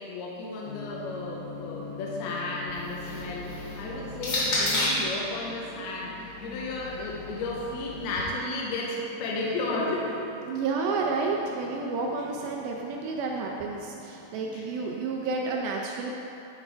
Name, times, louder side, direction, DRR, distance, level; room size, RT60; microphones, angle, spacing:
voice 1, 0.0-10.2 14.5-14.6, left 2 dB, 80° left, -3 dB, 2.6 m, -33 dB
sound 1, 0.6-15.6, left 2 dB, 60° right, 1.9 m, -45 dB
sound 2, 2.7-5.2 6.1-8.2, left 1 dB, 50° left, 2.5 m, -32 dB
voice 2, 10.4-16.1, right 4 dB, 80° right, 0 dB, 2.2 m, -30 dB
11.0 x 4.5 x 4.5 m, 2.8 s
omnidirectional pair, 4.7 m